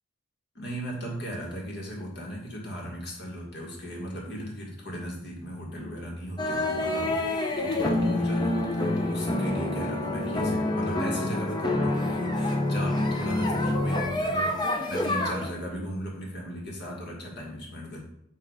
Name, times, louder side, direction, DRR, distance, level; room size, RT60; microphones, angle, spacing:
voice 1, 0.6-18.0, equal, 55° left, -1 dB, 1.9 m, -37 dB
sound 1, 6.4-15.5, left 1 dB, 20° left, 0.7 m, -27 dB
8.7 x 3.1 x 4.9 m, 0.79 s
head